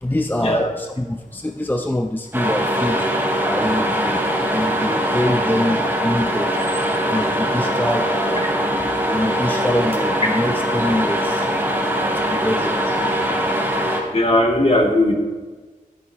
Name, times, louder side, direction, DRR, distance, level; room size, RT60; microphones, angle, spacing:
voice 1, 0.0-3.1 3.4-4.2 4.5-6.5 7.1-8.5 9.0-11.5 12.1-13.0, left 1 dB, 15° left, 5 dB, 0.6 m, -24 dB
sound 1, 2.3-14.0, equal, 15° right, 3.3 m, -21 dB
voice 2, 14.1-15.1, left 1 dB, 45° left, 0 dB, 2.4 m, -17 dB
13.5 x 10.0 x 3.0 m, 1.4 s
cardioid pair, 50°, 14 cm